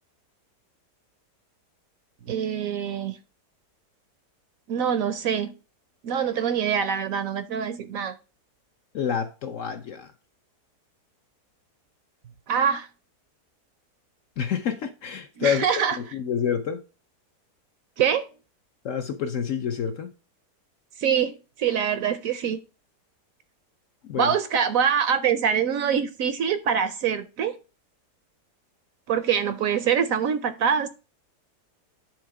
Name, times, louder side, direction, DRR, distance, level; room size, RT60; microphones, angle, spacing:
voice 1, 2.3-3.2 4.7-5.6 6.0-8.1 12.5-12.9 15.4-16.0 18.0-18.3 21.0-22.6 24.2-27.6 29.1-30.9, right 8 dB, 65° right, 0.9 m, -24 dB
voice 2, 8.9-10.1 14.4-15.7 16.0-16.8 18.8-20.1 24.0-24.3, left 7 dB, 60° left, 0.9 m, -28 dB
10.0 x 3.5 x 4.6 m
omnidirectional pair, 1.8 m